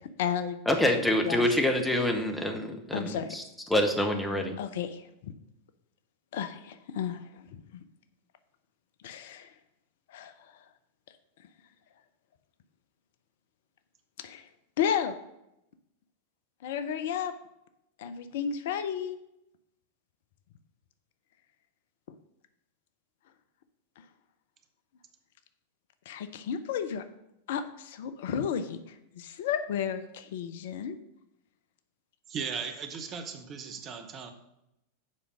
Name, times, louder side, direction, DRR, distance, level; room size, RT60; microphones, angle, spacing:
voice 1, 0.0-0.6 1.2-1.5 2.9-3.3 4.6-5.3 6.3-7.8 9.0-9.5 10.1-10.5 14.2-14.5 14.8-15.1 16.6-17.3 18.0-19.2 26.1-27.0 27.5-31.0, left 8 dB, 55° left, 10 dB, 0.5 m, -33 dB
voice 2, 0.7-3.4 3.7-4.6, left 1 dB, 5° left, 3 dB, 1.2 m, -26 dB
voice 3, 32.3-34.3, right 6 dB, 30° right, 6 dB, 0.9 m, -37 dB
7.4 x 5.1 x 6.2 m, 0.84 s
figure-of-eight pair, 90°, 0 cm